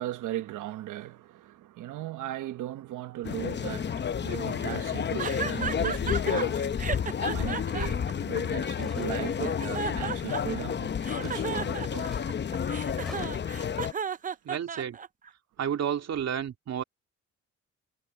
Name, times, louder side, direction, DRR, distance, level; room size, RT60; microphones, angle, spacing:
voice 1, 0.0-6.7 7.2-12.3, right 14 dB, 80° right, 1.3 m, -38 dB
sound 1, 3.2-13.9, left 7 dB, 35° left, 0.8 m, -30 dB
sound 2, 5.2-6.4 6.8-8.9 9.4-10.7 11.0-15.3, right 6 dB, 30° right, 0.5 m, -34 dB
sound 3, 8.8-9.7 11.2-12.3 12.9-13.6, equal, ahead, 6.3 m, -50 dB
voice 2, 14.4-15.0 15.6-16.8, right 9 dB, 60° right, 2.9 m, -31 dB
cardioid pair, 90°, 30 cm